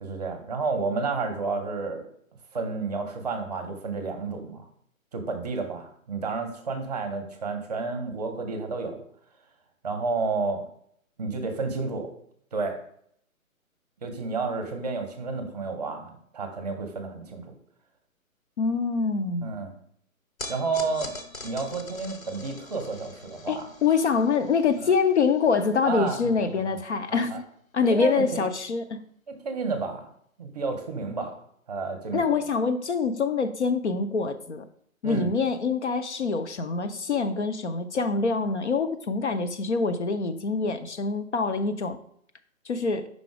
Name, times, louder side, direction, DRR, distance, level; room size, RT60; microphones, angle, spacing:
voice 1, 0.0-2.0 2.5-4.7 5.1-8.9 9.8-10.6 11.2-12.1 12.5-12.8 14.0-17.4 19.4-19.7 20.5-21.1 21.4-23.7 24.8-24.9 25.8-26.8 27.1-27.4 27.8-28.2 29.3-30.0 30.4-31.3 31.7-32.4 35.0-35.3, right 4 dB, 30° right, 5 dB, 0.7 m, -31 dB
voice 2, 18.6-19.5 23.5-27.4 27.7-29.0 32.1-34.6 35.0-42.0 42.7-43.1, left 4 dB, 55° left, 8 dB, 0.6 m, -25 dB
sound 1, 20.4-26.8, left 2 dB, 70° left, 1.1 m, -43 dB
5.2 x 3.7 x 4.8 m, 0.66 s
figure-of-eight pair, 135°, 42 cm